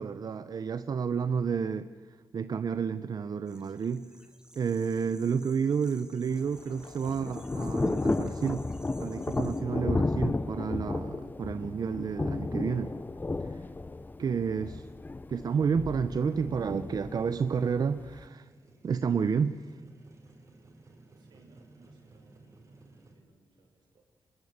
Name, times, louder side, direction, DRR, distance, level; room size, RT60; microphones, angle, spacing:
voice 1, 0.0-4.0 4.6-8.7 9.0-12.9 13.4-13.6 14.2-14.9 15.3-18.5 18.8-19.8, right 6 dB, 60° right, 13 dB, 0.8 m, -30 dB
sound 1, 3.5-9.6, right 1 dB, 10° right, 3.1 m, -57 dB
Thunder / Rain, 6.3-18.3, left 3 dB, 25° left, 0.8 m, -33 dB
voice 2, 14.1-14.7 21.2-23.9, right 3 dB, 85° right, 2 dB, 7.1 m, -63 dB
Motorcycle, 16.2-23.2, right 3 dB, 45° right, 5.7 m, -59 dB
25.5 x 22.0 x 8.2 m, 1.4 s
cardioid pair, 85°, 7 cm